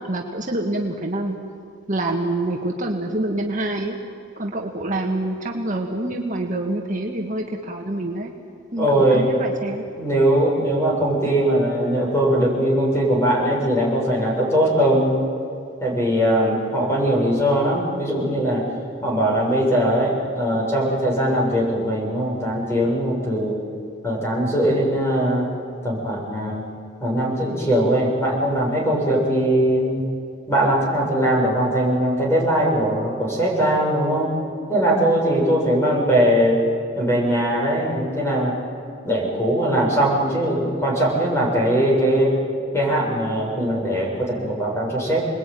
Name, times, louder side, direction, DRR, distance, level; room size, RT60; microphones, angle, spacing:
voice 1, 0.1-1.4 1.9-4.0 4.4-8.3 8.7-9.9, right 1 dB, 40° right, 0 dB, 1.8 m, -26 dB
voice 2, 8.8-9.4 10.0-15.2 15.8-18.6 19.0-23.5 24.0-25.5 25.8-26.6 27.0-30.1 30.5-34.3 34.7-36.6 37.0-38.5 39.0-42.3 42.7-45.3, right 1 dB, 15° left, -3 dB, 7.5 m, -20 dB
29.5 x 21.0 x 9.3 m, 2.3 s
head